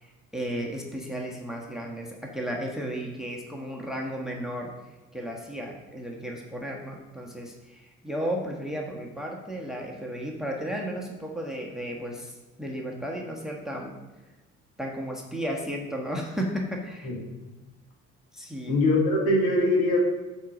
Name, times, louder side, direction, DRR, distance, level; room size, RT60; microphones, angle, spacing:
voice 1, 0.0-4.7 5.1-13.9 14.8-17.1 18.3-18.8, equal, ahead, 0 dB, 1.3 m, -34 dB
voice 2, 18.7-20.0, left 2 dB, 60° left, -3 dB, 2.8 m, -22 dB
7.2 x 4.1 x 6.2 m, 1.2 s
figure-of-eight pair, 55°, 39 cm